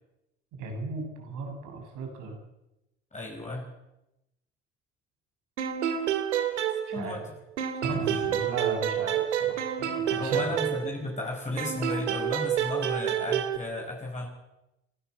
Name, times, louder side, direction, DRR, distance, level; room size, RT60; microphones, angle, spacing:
voice 1, 0.6-2.4 6.9-7.2 7.8-10.5, right 3 dB, 60° right, 4 dB, 6.9 m, -36 dB
voice 2, 3.1-3.7 6.9-7.2 7.9-8.3 10.1-14.3, left 2 dB, 20° left, -1 dB, 5.6 m, -34 dB
sound 1, 5.6-7.3 7.6-11.2 11.6-13.6, right 9 dB, 85° right, 2.0 m, -29 dB
29.0 x 11.5 x 7.9 m, 0.91 s
hypercardioid pair, 65°, 34 cm